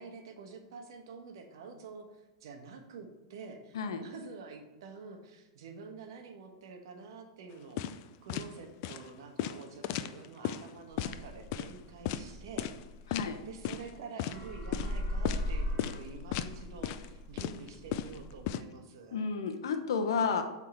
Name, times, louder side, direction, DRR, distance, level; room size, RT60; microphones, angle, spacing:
voice 1, 0.0-7.8 8.2-12.7 13.5-19.3, right 4 dB, 70° right, 5 dB, 1.2 m, -48 dB
sound 1, 7.8-8.0 8.3-8.5 8.8-9.0 9.4-10.6 11.0-11.2 11.5-11.7 12.1-12.2 12.6-12.8 13.1-13.3 13.6-13.9 14.2-14.4 14.7-14.9 15.3-15.5 15.8-16.0 16.3-16.5 16.8-17.1 17.4-18.6, left 11 dB, 50° left, 0.4 m, -34 dB
sound 2, 10.9-14.0 14.3-18.5, left 1 dB, 10° left, 1.9 m, -39 dB
voice 2, 19.1-20.4, left 5 dB, 80° left, 7 dB, 0.8 m, -31 dB
7.8 x 3.6 x 4.4 m, 1.1 s
hypercardioid pair, 135°, 2 cm